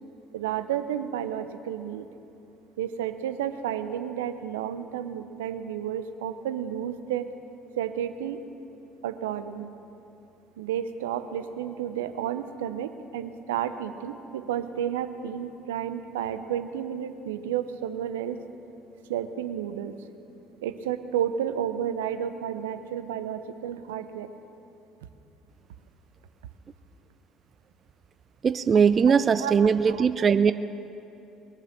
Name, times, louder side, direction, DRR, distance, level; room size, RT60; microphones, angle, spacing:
voice 1, 0.3-2.1 2.8-7.3 7.8-8.4 9.0-9.7 10.6-18.4 19.1-20.0 20.6-24.3 29.1-29.5 29.9-30.1, right 9 dB, 80° right, 11 dB, 0.6 m, -31 dB
voice 2, 28.4-30.5, right 6 dB, 40° right, 13 dB, 0.4 m, -20 dB
21.0 x 7.5 x 7.2 m, 2.9 s
hypercardioid pair, 60°, 0 cm